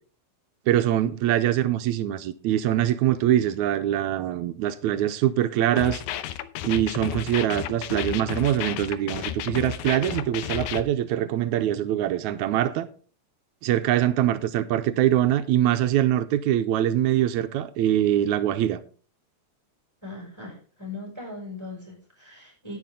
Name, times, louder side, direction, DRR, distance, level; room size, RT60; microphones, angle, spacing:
voice 1, 0.7-6.0 6.6-12.9 13.6-18.8, right 12 dB, 85° right, 2.1 m, -23 dB
sound 1, 5.8-10.8, left 11 dB, 85° left, 2.1 m, -32 dB
voice 2, 20.0-22.8, left 2 dB, 10° right, 5.5 m, -39 dB
10.5 x 10.0 x 3.7 m
omnidirectional pair, 3.3 m